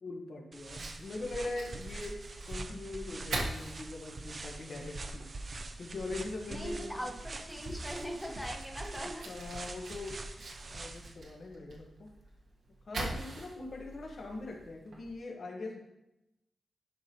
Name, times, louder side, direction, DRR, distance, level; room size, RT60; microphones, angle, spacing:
voice 1, 0.0-2.2 2.5-5.3 5.8-7.1 9.0-12.1 12.8-15.8, left 2 dB, 55° left, 1 dB, 1.3 m, -42 dB
sound 1, 0.5-11.1, right 2 dB, 40° right, 0.5 m, -44 dB
Fire, 0.6-15.2, right 2 dB, 80° right, 1.3 m, -45 dB
voice 2, 6.5-9.3, equal, ahead, 0 dB, 1.2 m, -40 dB
10.5 x 5.3 x 2.9 m, 0.90 s
wide cardioid pair, 135°, 0 cm